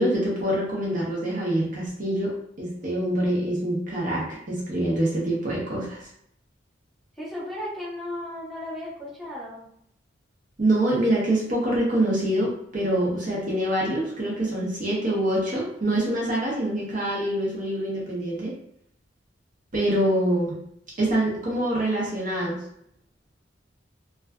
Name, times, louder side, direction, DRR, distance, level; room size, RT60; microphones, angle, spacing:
voice 1, 0.0-6.1 10.6-18.5 19.7-20.6 21.0-22.6, right 1 dB, 45° right, -5 dB, 0.7 m, -25 dB
voice 2, 7.1-9.7, left 1 dB, ahead, -9 dB, 0.9 m, -35 dB
2.4 x 2.3 x 2.2 m, 0.70 s
head